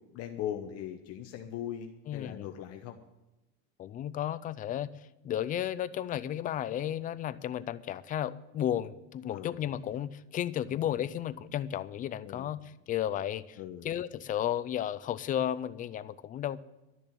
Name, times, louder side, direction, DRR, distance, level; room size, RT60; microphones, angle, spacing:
voice 1, 0.0-3.0 9.3-9.6 10.6-10.9 12.2-12.5 13.6-13.9, left 10 dB, 45° left, 5 dB, 1.0 m, -40 dB
voice 2, 2.1-2.5 3.8-4.9 5.2-13.6 13.8-16.6, left 11 dB, 25° left, 15 dB, 0.3 m, -33 dB
12.5 x 6.9 x 9.8 m, 1.0 s
cardioid pair, 155°, 34 cm